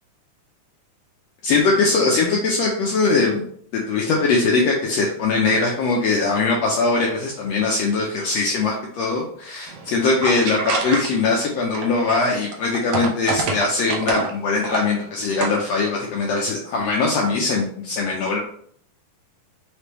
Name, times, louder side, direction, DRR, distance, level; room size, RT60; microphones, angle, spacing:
voice 1, 1.4-3.5 3.7-18.4, left 3 dB, 90° left, -1 dB, 1.4 m, -21 dB
sound 1, 9.7-11.4 11.7-14.3 14.6-14.8 15.2-15.8, right 4 dB, 90° right, 1.2 m, -26 dB
5.1 x 3.3 x 3.0 m, 0.62 s
omnidirectional pair, 3.6 m